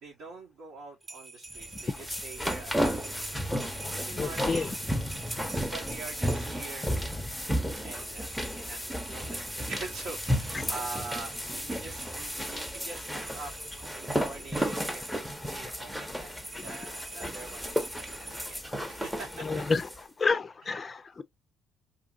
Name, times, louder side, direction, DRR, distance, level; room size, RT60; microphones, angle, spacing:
voice 1, 0.0-3.3 3.5-4.8 5.5-6.9 7.8-13.5 14.0-16.3 16.6-19.6 20.6-20.7, right 3 dB, 75° right, 1.1 m, -44 dB
sound 1, 1.0-6.7 7.9-15.2 16.4-18.6, right 2 dB, 30° right, 0.9 m, -46 dB
sound 2, 1.6-20.0, equal, ahead, 0.7 m, -33 dB
voice 2, 4.1-4.7 19.5-19.8 20.2-21.2, left 4 dB, 30° left, 0.4 m, -29 dB
2.7 x 2.6 x 2.5 m
cardioid pair, 85°, 0 cm